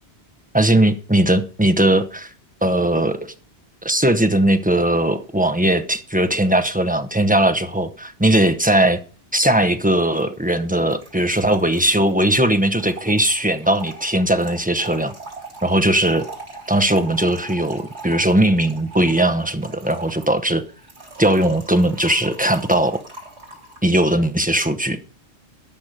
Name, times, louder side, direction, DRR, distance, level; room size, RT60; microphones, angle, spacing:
voice 1, 0.5-2.3 2.6-3.3 3.8-9.0 9.3-15.1 15.6-16.3 16.7-20.6 21.2-23.0 23.8-25.0, right 1 dB, 10° right, 0.7 m, -19 dB
Trickle dribble / Fill (with liquid), 10.2-10.3 10.5-10.6 10.8-23.9, right 3 dB, 65° right, 3.7 m, -40 dB
12.0 x 6.2 x 6.5 m
omnidirectional pair, 1.2 m